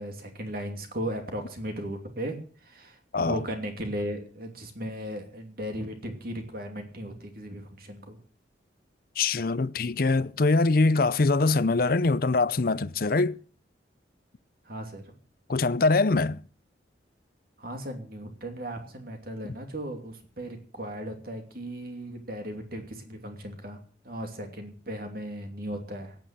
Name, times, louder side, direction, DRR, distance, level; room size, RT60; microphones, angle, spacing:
voice 1, 0.0-8.2 14.6-15.2 17.6-23.8 24.0-26.2, equal, 50° right, 2.7 m, -36 dB
voice 2, 9.2-13.4 15.5-16.4, left 3 dB, 50° left, 0.6 m, -23 dB
17.0 x 8.9 x 7.5 m
head